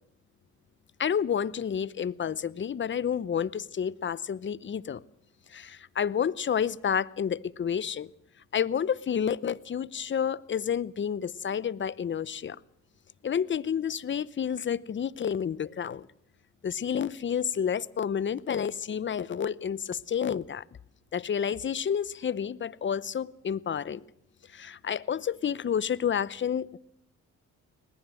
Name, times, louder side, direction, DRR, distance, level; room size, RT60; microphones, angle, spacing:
voice 1, 1.0-5.0 5.5-8.1 8.5-12.6 13.2-16.1 16.6-20.6 21.1-24.0 24.5-26.8, left 8 dB, 40° left, 20 dB, 0.9 m, -30 dB
23.0 x 20.0 x 7.7 m, 0.72 s
cardioid pair, 90°, 30 cm